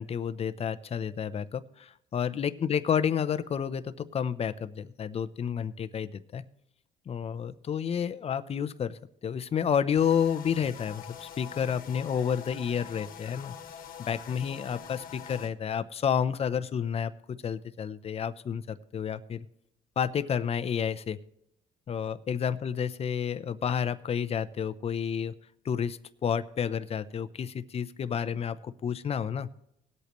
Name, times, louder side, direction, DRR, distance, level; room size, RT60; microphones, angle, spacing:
voice 1, 0.0-6.4 7.1-13.5 14.0-19.5 20.0-21.2 21.9-25.3 25.6-29.5, left 8 dB, 35° left, 13 dB, 0.7 m, -30 dB
sound 1, 10.0-15.5, left 8 dB, 55° left, 1.4 m, -45 dB
20.0 x 8.3 x 3.1 m, 0.78 s
cardioid pair, 110°, 17 cm